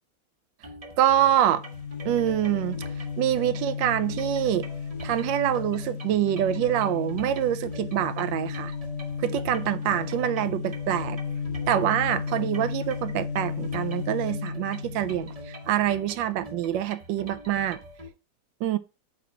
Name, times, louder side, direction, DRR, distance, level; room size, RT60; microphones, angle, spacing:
sound 1, 0.6-18.1, equal, 35° right, 0.6 m, -44 dB
voice 1, 1.0-1.6 2.0-2.8 3.2-4.7 5.0-8.7 9.2-11.2 11.7-17.8 18.6-18.8, right 11 dB, 85° right, 1.3 m, -25 dB
sound 2, 1.4-16.0, left 6 dB, 55° left, 0.8 m, -34 dB
4.6 x 4.2 x 5.4 m
omnidirectional pair, 2.0 m